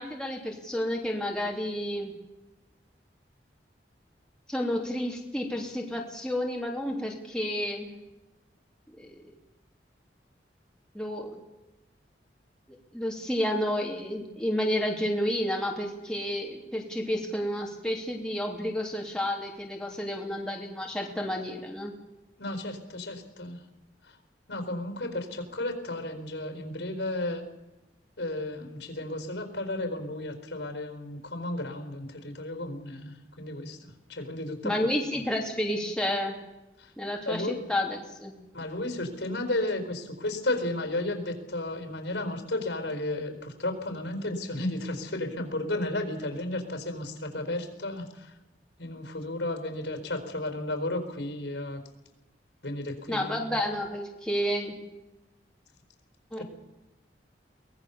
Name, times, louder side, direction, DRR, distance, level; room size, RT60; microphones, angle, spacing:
voice 1, 0.0-2.1 4.5-8.0 9.0-9.3 10.9-11.4 12.9-21.9 34.6-36.3 37.0-38.3 53.1-54.8 56.3-56.4, equal, 5° left, 0 dB, 3.1 m, -30 dB
voice 2, 22.4-23.6 24.0-24.1 24.5-27.4 28.2-34.9 36.8-36.9 37.3-37.6 38.5-48.3 48.8-51.8 52.6-53.4 56.4-56.5, left 1 dB, 80° left, 7 dB, 4.4 m, -33 dB
23.5 x 19.0 x 7.0 m, 1.0 s
head